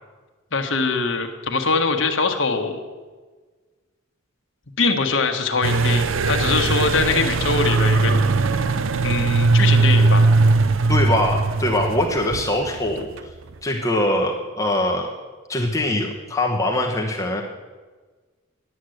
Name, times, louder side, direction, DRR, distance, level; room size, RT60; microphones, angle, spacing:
voice 1, 0.5-2.8 4.8-8.1 9.0-10.3, left 4 dB, 65° left, 4 dB, 1.4 m, -22 dB
sound 1, 5.6-13.2, right 3 dB, 75° right, 0.6 m, -19 dB
voice 2, 10.9-13.3 13.6-15.1 15.5-17.4, left 1 dB, 15° left, -1 dB, 1.1 m, -22 dB
11.5 x 9.2 x 7.9 m, 1.4 s
head